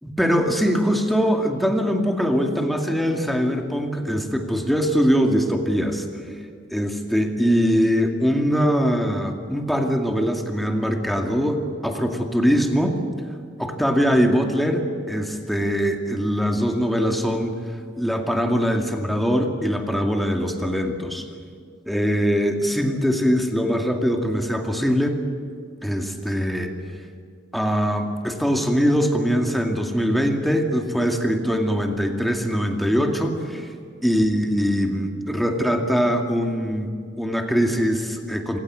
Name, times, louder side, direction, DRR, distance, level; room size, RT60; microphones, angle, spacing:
voice 1, 0.0-6.0 6.7-13.0 13.6-17.5 18.0-21.2 21.9-25.2 25.8-26.7 27.5-33.7 34.0-36.9 37.2-38.6, equal, ahead, 3 dB, 2.3 m, -22 dB
26.5 x 16.5 x 9.5 m, 2.2 s
head